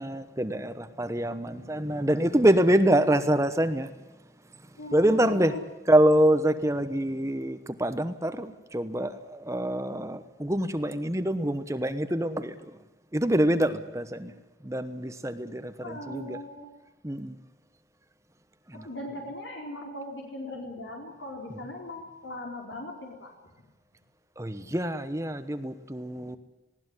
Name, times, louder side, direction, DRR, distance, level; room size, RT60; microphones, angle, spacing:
voice 1, 0.0-3.9 4.9-5.6 5.8-12.8 13.1-14.3 14.6-16.4 17.0-17.4 18.7-18.9 21.5-21.7 24.4-26.4, right 1 dB, 15° right, 10 dB, 1.0 m, -25 dB
voice 2, 4.8-5.6 14.2-14.3 14.6-14.7 15.8-16.6 18.7-23.3, left 1 dB, 80° left, 0 dB, 4.4 m, -39 dB
20.0 x 17.5 x 9.7 m, 1.1 s
head